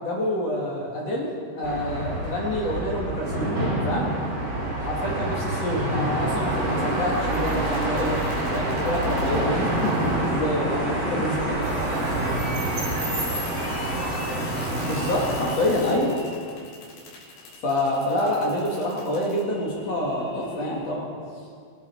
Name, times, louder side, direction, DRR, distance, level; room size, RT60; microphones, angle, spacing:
voice 1, 0.0-3.5 3.8-4.1 4.8-8.2 8.5-11.6 14.8-16.2 17.6-21.1, left 1 dB, 55° left, -3 dB, 2.0 m, -27 dB
sound 1, 1.6-15.5, right 1 dB, 35° right, 2.8 m, -27 dB
voice 2, 4.9-5.4 11.5-14.7, right 2 dB, 75° right, -2 dB, 4.0 m, -38 dB
sound 2, 7.6-20.9, left 2 dB, 85° left, 4.9 m, -40 dB
24.0 x 8.6 x 4.2 m, 2.2 s
omnidirectional pair, 5.0 m